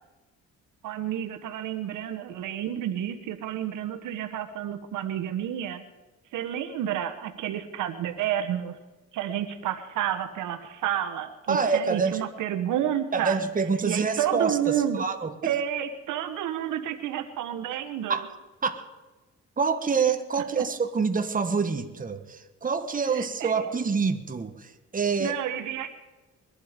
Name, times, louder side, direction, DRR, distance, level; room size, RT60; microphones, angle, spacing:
voice 1, 0.8-5.8 6.3-8.7 9.1-13.4 13.8-15.0 15.4-18.2 23.1-23.5 25.2-25.9, right 10 dB, 85° right, 7 dB, 1.4 m, -30 dB
voice 2, 11.5-12.3 13.1-15.5 18.1-18.3 18.6-18.9 19.6-25.4, right 5 dB, 25° right, 7 dB, 1.4 m, -26 dB
21.5 x 11.5 x 5.2 m, 1.2 s
cardioid pair, 90°, 30 cm